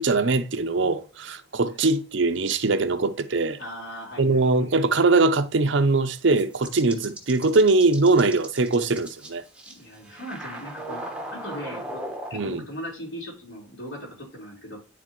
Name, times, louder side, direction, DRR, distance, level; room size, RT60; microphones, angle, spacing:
voice 1, 0.0-3.6 4.2-9.4 12.3-12.6, right 3 dB, 60° right, 0.6 m, -22 dB
voice 2, 3.6-4.8 9.7-11.0 11.3-12.0 12.3-14.8, equal, 60° left, 4.1 m, -38 dB
sound 1, 6.3-12.5, right 1 dB, 5° right, 1.0 m, -38 dB
9.9 x 4.1 x 3.0 m
head